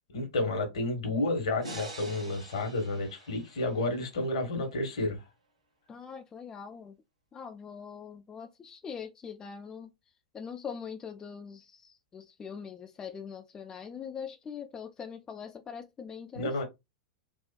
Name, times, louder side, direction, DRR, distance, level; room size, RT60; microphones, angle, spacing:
voice 1, 0.1-5.2 16.3-16.6, left 2 dB, 60° left, 1.2 m, -31 dB
sound 1, 1.6-4.8, right 2 dB, 85° right, 1.6 m, -46 dB
voice 2, 5.9-6.9 7.3-9.9 10.3-16.6, left 6 dB, 20° left, 0.4 m, -42 dB
3.6 x 2.4 x 2.2 m
figure-of-eight pair, 95°, 3 cm